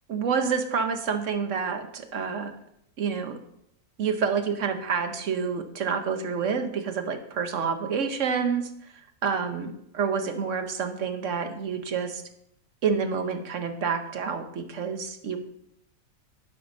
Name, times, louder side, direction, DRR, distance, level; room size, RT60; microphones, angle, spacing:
voice 1, 0.1-2.5 3.0-3.4 4.0-8.7 9.2-12.2 12.8-15.4, right 6 dB, 60° right, 7 dB, 1.2 m, -28 dB
11.5 x 5.7 x 5.2 m, 0.74 s
omnidirectional pair, 1.6 m